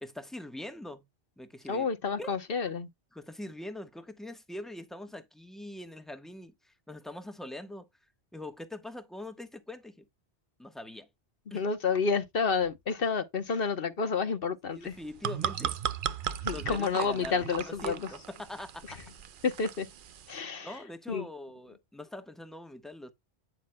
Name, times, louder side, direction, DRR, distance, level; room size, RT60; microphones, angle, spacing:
voice 1, 0.0-1.1 1.4-1.9 2.2-2.3 3.1-7.9 8.3-10.1 10.6-11.1 11.5-11.6 14.7-15.7 16.5-19.0 20.6-23.1, left 1 dB, ahead, 1.1 m, -43 dB
voice 2, 1.7-2.9 11.5-14.9 16.4-18.0 19.4-19.9 20.3-20.7 21.1-21.3, left 5 dB, 55° left, 1.2 m, -30 dB
sound 1, 14.9-20.3, right 8 dB, 55° right, 0.7 m, -36 dB
9.3 x 7.7 x 2.2 m
omnidirectional pair, 1.2 m